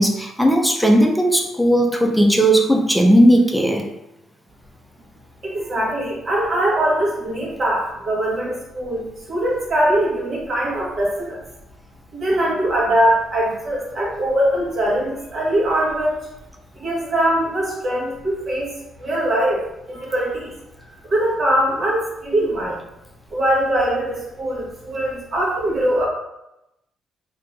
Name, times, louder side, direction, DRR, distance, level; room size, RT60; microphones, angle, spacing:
voice 1, 0.0-3.8, right 1 dB, ahead, 1 dB, 0.7 m, -16 dB
voice 2, 5.4-11.4 12.1-16.2 16.7-20.5 21.0-22.8 23.3-26.1, right 1 dB, 50° right, -4 dB, 1.5 m, -22 dB
3.6 x 2.9 x 3.5 m, 0.90 s
cardioid pair, 90°, 0 cm